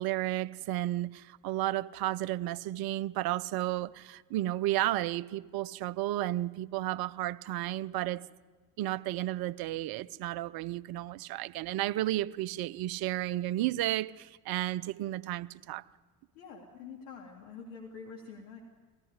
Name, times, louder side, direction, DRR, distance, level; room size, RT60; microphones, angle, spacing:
voice 1, 0.0-8.2 8.8-15.8, right 15 dB, 55° right, 18 dB, 0.7 m, -32 dB
voice 2, 16.3-18.6, left 5 dB, 70° left, 1 dB, 2.4 m, -46 dB
19.0 x 15.0 x 9.7 m, 1.4 s
hypercardioid pair, 65°, 45 cm